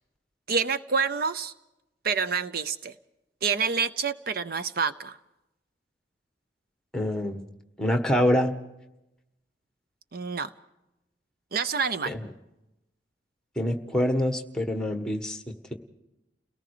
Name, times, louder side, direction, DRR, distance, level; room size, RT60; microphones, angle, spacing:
voice 1, 0.5-1.5 2.0-2.9 3.4-5.2 10.1-10.5 11.5-12.1, right 5 dB, 55° right, 12 dB, 0.7 m, -27 dB
voice 2, 6.9-7.4 7.8-8.5 12.1-12.3 13.5-15.4, equal, 5° left, 6 dB, 1.6 m, -25 dB
30.0 x 18.5 x 5.0 m, 0.92 s
head